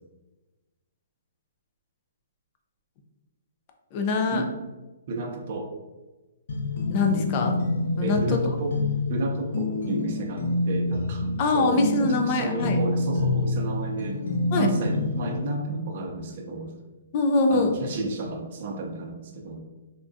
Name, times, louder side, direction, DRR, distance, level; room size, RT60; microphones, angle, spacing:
voice 1, 3.9-4.4 6.9-7.6 8.0-8.4 11.4-12.8 14.5-14.7 17.1-17.8, left 3 dB, 30° left, 4 dB, 0.4 m, -23 dB
voice 2, 5.1-5.7 8.0-8.7 9.1-14.2 14.5-16.7 17.5-19.6, right 2 dB, 40° right, 2 dB, 0.5 m, -32 dB
sound 1, 6.5-15.4, left 2 dB, 80° left, 0.7 m, -27 dB
3.5 x 2.2 x 2.6 m, 1.1 s
hypercardioid pair, 165°, 0 cm